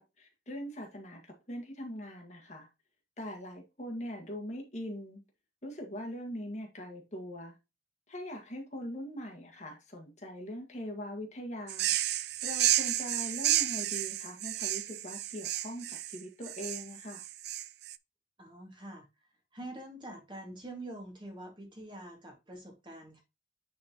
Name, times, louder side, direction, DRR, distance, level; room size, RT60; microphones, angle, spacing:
voice 1, 0.0-2.7 3.2-5.2 5.6-7.6 8.1-11.9 12.4-17.2, equal, 40° left, 1.8 m, -41 dB
sound 1, 11.7-18.0, right 13 dB, 60° right, 0.4 m, -31 dB
voice 2, 18.4-19.1 19.5-23.2, right 1 dB, 25° right, 2.0 m, -45 dB
9.2 x 4.3 x 3.0 m
head